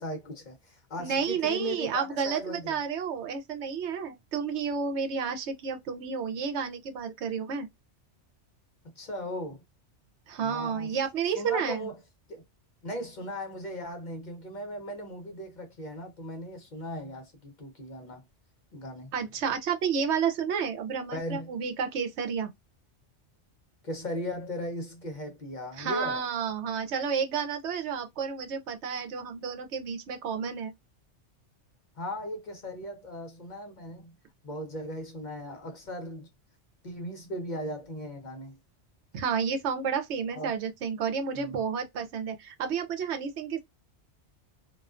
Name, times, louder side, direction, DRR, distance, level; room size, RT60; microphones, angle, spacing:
voice 1, 0.0-2.8 8.8-9.6 10.4-11.0 11.3-12.0 12.3-12.4 12.8-18.2 18.7-19.1 21.1-21.5 23.8-26.2 32.0-34.1 34.4-36.3 36.8-38.6 40.3-40.5 41.3-41.6, equal, 50° left, 0.7 m, -37 dB
voice 2, 1.0-7.7 10.3-11.9 19.1-22.5 25.8-30.7 39.1-43.6, right 6 dB, 75° right, 0.9 m, -31 dB
2.3 x 2.2 x 2.4 m
omnidirectional pair, 1.2 m